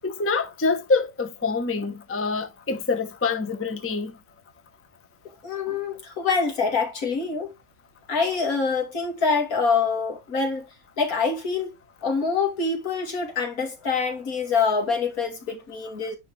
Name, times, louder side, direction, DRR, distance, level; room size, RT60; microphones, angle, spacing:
voice 1, 0.0-4.1, left 4 dB, 10° left, 0.7 m, -26 dB
voice 2, 5.4-7.5 8.1-10.7 11.0-11.8 12.0-16.2, left 5 dB, 75° left, 2.9 m, -25 dB
9.8 x 3.7 x 3.3 m
omnidirectional pair, 1.5 m